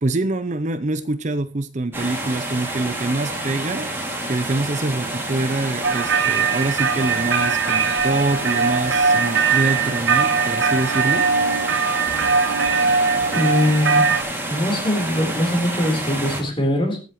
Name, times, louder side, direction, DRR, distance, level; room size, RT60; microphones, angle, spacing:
voice 1, 0.0-3.9 4.3-11.3, right 2 dB, 40° right, 0.6 m, -25 dB
sound 1, 1.9-16.4, right 1 dB, 10° right, 2.5 m, -29 dB
sound 2, 5.8-14.2, right 5 dB, 70° right, 1.2 m, -20 dB
voice 2, 13.3-14.1 14.5-17.0, left 1 dB, 25° left, 3.9 m, -21 dB
21.0 x 7.8 x 3.1 m
head